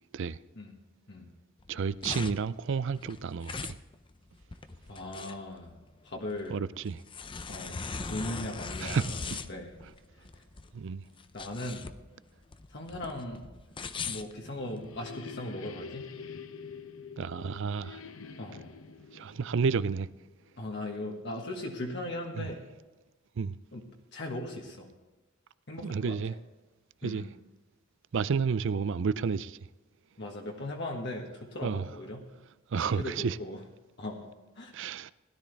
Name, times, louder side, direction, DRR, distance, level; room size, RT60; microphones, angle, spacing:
sound 1, 1.6-15.1, left 4 dB, 25° left, 0.5 m, -40 dB
voice 1, 1.7-3.8 6.5-7.0 8.8-9.4 10.7-11.0 17.2-18.0 19.1-20.1 22.4-22.5 23.4-23.6 25.8-26.3 27.0-27.3 28.1-29.6 31.6-31.8 32.7-33.4 34.7-35.1, right 5 dB, 60° right, 0.4 m, -31 dB
voice 2, 4.9-5.7 6.0-6.6 7.5-9.8 11.3-11.9 12.7-13.4 14.1-16.1 18.4-18.7 20.6-22.6 23.7-23.9 24.1-24.9 25.7-26.2 27.0-27.3 30.2-32.2 32.8-33.6 34.0-34.3 34.5-34.7, left 1 dB, 55° left, 1.7 m, -38 dB
sound 2, 14.4-20.8, left 5 dB, 75° left, 0.8 m, -47 dB
16.5 x 12.5 x 3.4 m
head